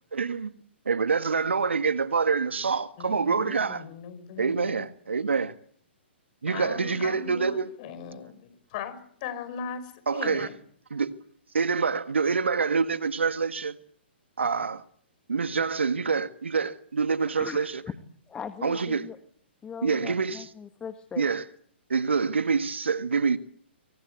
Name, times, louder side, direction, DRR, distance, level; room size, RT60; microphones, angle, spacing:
voice 1, 0.1-0.5 0.8-3.8 4.4-5.5 6.4-7.7 10.1-10.5 10.9-11.1 11.5-13.8 14.4-14.8 15.3-17.7 18.6-19.1 19.8-20.5 21.2-21.4 21.9-23.4, right 5 dB, 80° right, 1.6 m, -26 dB
voice 2, 3.0-4.9 6.5-10.6, left 6 dB, 40° left, 5.4 m, -39 dB
voice 3, 17.4-17.9 18.3-19.2 19.6-21.3, left 7 dB, 15° left, 1.6 m, -39 dB
27.0 x 23.5 x 8.2 m
hypercardioid pair, 125°, 6 cm